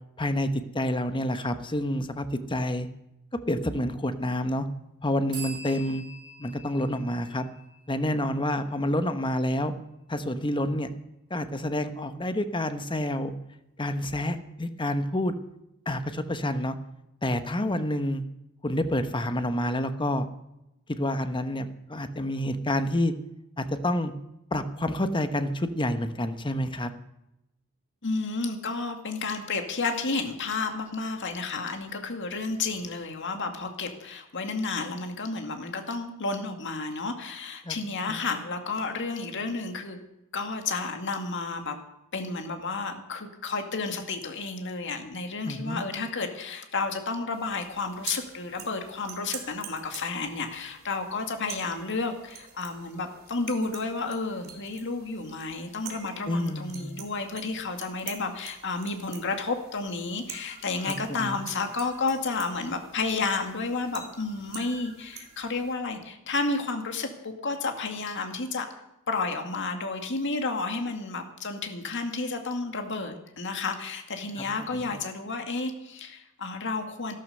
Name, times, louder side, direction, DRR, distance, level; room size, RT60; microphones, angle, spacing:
voice 1, 0.2-2.9 3.5-4.7 5.0-6.0 6.4-7.5 7.9-9.7 10.1-10.9 11.3-13.3 13.8-15.3 15.9-16.8 17.2-18.2 18.6-20.3 20.9-23.1 23.6-24.1 24.5-26.9 37.6-37.7 38.1-38.2 45.5-45.8 56.3-57.0 60.8-61.4 74.7-74.9, left 1 dB, 25° left, 9 dB, 1.1 m, -28 dB
sound 1, 5.3-8.9, right 3 dB, 20° right, 5.7 m, -44 dB
voice 2, 28.0-40.0 40.3-41.8 42.1-68.7 69.1-77.1, left 3 dB, 60° left, 5 dB, 2.1 m, -31 dB
sound 2, 47.3-65.7, right 7 dB, 45° right, 2.8 m, -46 dB
13.0 x 12.5 x 6.7 m, 0.89 s
head